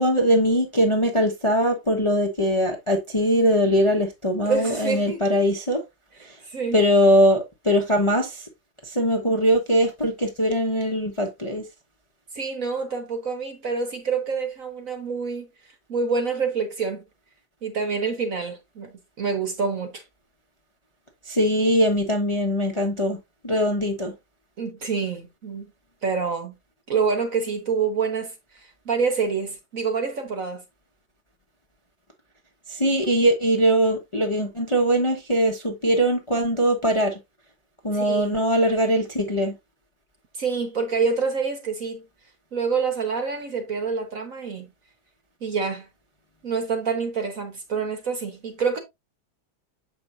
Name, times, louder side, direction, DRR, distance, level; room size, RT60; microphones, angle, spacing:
voice 1, 0.0-5.8 6.2-6.4 6.7-8.5 8.8-11.6 21.2-24.1 32.7-37.2 37.8-39.6, equal, 20° left, 0.9 m, -21 dB
voice 2, 4.4-5.2 6.4-6.8 12.3-15.5 15.9-17.0 17.6-20.0 24.6-25.7 26.0-26.5 26.9-28.3 28.8-30.6 37.9-38.4 40.3-42.0 42.5-44.7 45.4-45.9 46.4-48.8, right 5 dB, 45° right, 1.4 m, -27 dB
7.5 x 5.6 x 2.6 m
omnidirectional pair, 2.2 m